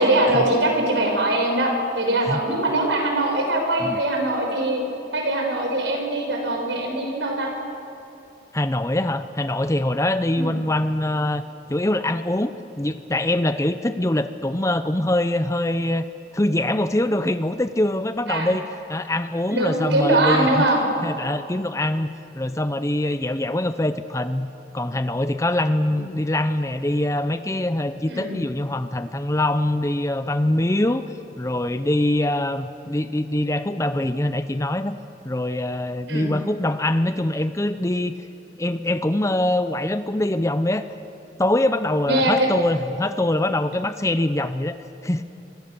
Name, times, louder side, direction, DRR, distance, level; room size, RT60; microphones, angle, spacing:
voice 1, 0.0-4.8 5.1-7.5 10.3-10.5 18.3-18.5 19.5-20.8 25.9-26.1 28.1-28.4 36.1-36.3 42.1-42.3, right 1 dB, 75° right, 1 dB, 5.9 m, -22 dB
voice 2, 8.5-11.4 11.7-16.0 16.3-20.6 21.0-22.1 22.3-24.5 24.7-31.0 31.4-35.0 35.2-38.1 38.6-40.9 41.4-44.8 45.0-45.2, left 1 dB, 15° left, 11 dB, 0.6 m, -23 dB
26.5 x 24.5 x 6.9 m, 2.6 s
head